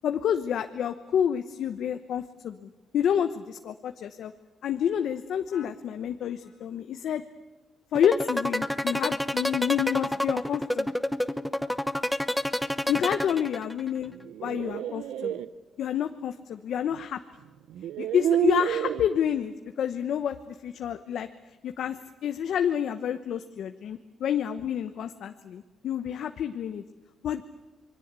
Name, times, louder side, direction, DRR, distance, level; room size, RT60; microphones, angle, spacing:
voice 1, 0.0-4.3 4.6-7.2 7.9-10.9 12.9-14.1 14.4-15.4 15.8-17.2 18.0-21.3 21.6-26.8 27.2-27.4, left 9 dB, 70° left, 8 dB, 1.0 m, -29 dB
sound 1, 7.9-13.9, left 1 dB, 5° left, 0.9 m, -28 dB
sound 2, 14.1-15.5 16.9-17.0 17.7-19.1, right 10 dB, 85° right, 0.9 m, -28 dB
27.0 x 22.0 x 8.2 m, 1.2 s
cardioid pair, 90°, 0 cm